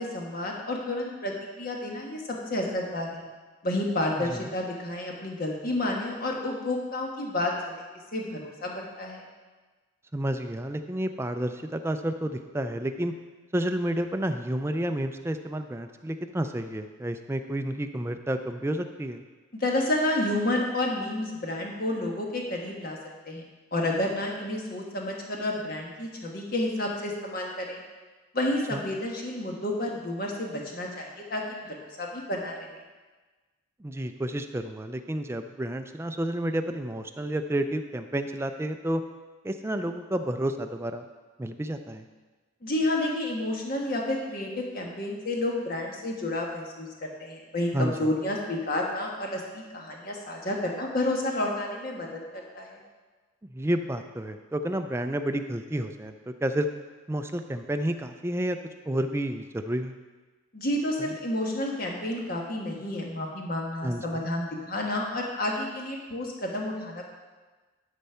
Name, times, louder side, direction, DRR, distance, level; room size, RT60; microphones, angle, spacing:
voice 1, 0.0-3.2 3.6-7.8 8.1-9.2 19.5-23.0 23.2-23.4 23.7-27.8 28.3-32.7 42.6-52.2 52.5-52.8 60.5-67.0, left 1 dB, 45° left, -1 dB, 1.4 m, -30 dB
voice 2, 10.1-13.1 13.5-19.2 28.7-28.8 33.8-39.0 39.4-41.0 41.4-42.1 47.7-47.9 53.5-56.7 57.1-58.6 58.9-60.0 61.0-61.1 63.8-64.2, right 1 dB, 15° right, 7 dB, 0.3 m, -30 dB
11.5 x 4.2 x 5.6 m, 1.3 s
head